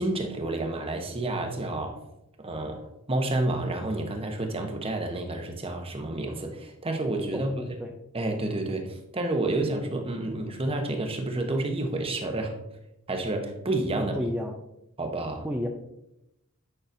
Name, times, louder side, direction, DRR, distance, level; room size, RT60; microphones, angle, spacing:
voice 1, 0.0-2.0 2.4-7.6 8.1-12.6 13.1-14.2 15.0-15.5, right 2 dB, 25° right, 3 dB, 1.0 m, -29 dB
voice 2, 7.3-8.0 14.0-14.6 15.4-15.7, equal, 5° right, -1 dB, 0.5 m, -32 dB
8.9 x 5.8 x 2.6 m, 0.86 s
head